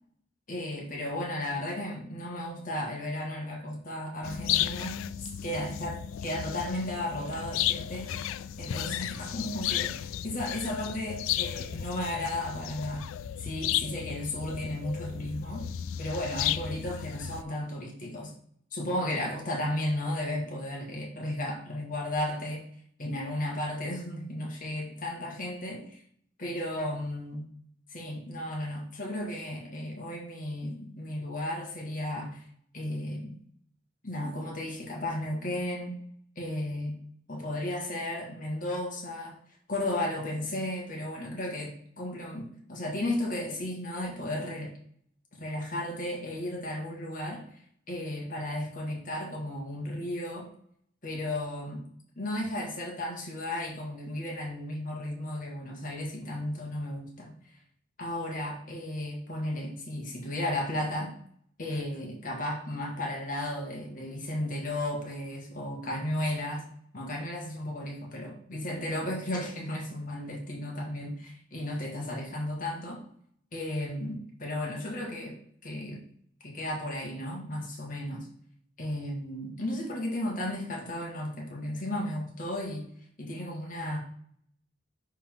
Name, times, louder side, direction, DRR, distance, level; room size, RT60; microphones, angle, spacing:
voice 1, 0.5-8.1 8.6-13.0 13.4-15.7 16.0-18.3 18.7-22.6 23.0-26.0 26.4-27.4 27.9-32.4 32.7-33.4 34.0-36.0 36.3-37.0 37.3-39.3 39.7-44.7 45.4-47.4 47.9-50.5 51.0-51.8 52.1-57.3 58.0-61.1 61.6-66.6 66.9-73.0 73.5-75.4 75.6-76.0 76.4-78.3 78.8-82.9 83.2-84.0, left 1 dB, 40° left, -1 dB, 1.9 m, -34 dB
sound 1, 4.2-17.4, left 11 dB, 85° left, 0.3 m, -34 dB
10.0 x 3.8 x 3.8 m, 0.63 s
head